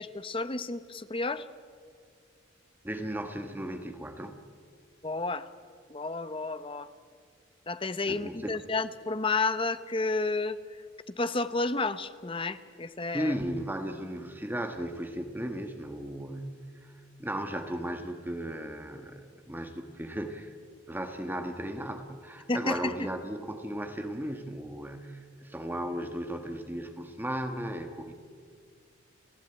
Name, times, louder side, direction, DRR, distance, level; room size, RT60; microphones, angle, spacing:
voice 1, 0.0-1.5 5.0-5.5 5.9-6.9 7.7-10.6 11.1-13.4 22.5-22.9, left 3 dB, 25° left, 12 dB, 0.9 m, -31 dB
voice 2, 2.8-4.4 8.1-8.5 13.1-16.5 16.8-16.9 17.2-20.6 20.9-28.1, right 1 dB, 10° right, 6 dB, 1.4 m, -36 dB
29.5 x 16.0 x 9.0 m, 2.1 s
head